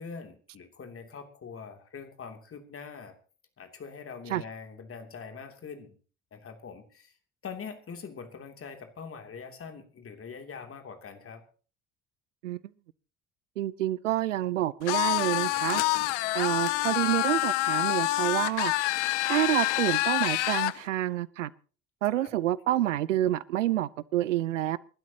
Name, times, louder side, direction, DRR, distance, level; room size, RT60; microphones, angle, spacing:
voice 1, 0.0-3.1 3.6-6.0 6.3-7.1 7.4-11.4 16.8-16.9 22.1-22.3, left 5 dB, 35° left, 2.9 m, -43 dB
voice 2, 13.6-15.8 16.3-18.7 19.2-21.5 22.0-24.8, right 14 dB, 80° right, 0.7 m, -28 dB
sound 1, 14.9-20.8, left 19 dB, 70° left, 0.7 m, -27 dB
28.5 x 12.0 x 2.9 m
figure-of-eight pair, 55°, 37 cm